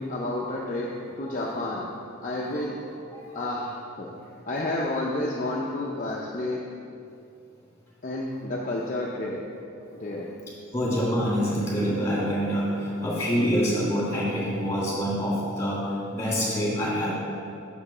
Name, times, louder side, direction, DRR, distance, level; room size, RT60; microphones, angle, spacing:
voice 1, 0.0-1.9 2.2-2.8 3.3-4.1 4.5-6.6 8.0-9.5 10.0-10.3, left 1 dB, 35° left, -3 dB, 0.5 m, -30 dB
voice 2, 10.7-17.1, equal, 10° left, -6 dB, 1.9 m, -26 dB
6.8 x 5.1 x 5.4 m, 2.5 s
head